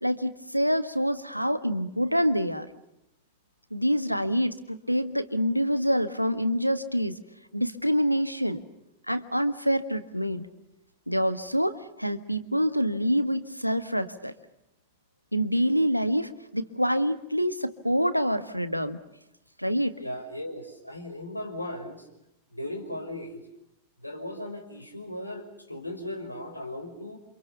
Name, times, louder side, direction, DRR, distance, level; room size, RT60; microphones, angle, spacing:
voice 1, 0.0-2.7 3.7-7.2 7.5-8.6 9.1-10.5 11.1-14.3 15.3-19.0 19.6-19.9, equal, 90° right, 11 dB, 1.6 m, -26 dB
voice 2, 20.0-22.1 22.5-23.4 24.0-27.2, left 1 dB, 85° left, 4 dB, 5.4 m, -37 dB
29.0 x 27.0 x 6.9 m, 0.84 s
figure-of-eight pair, 90°, 0 cm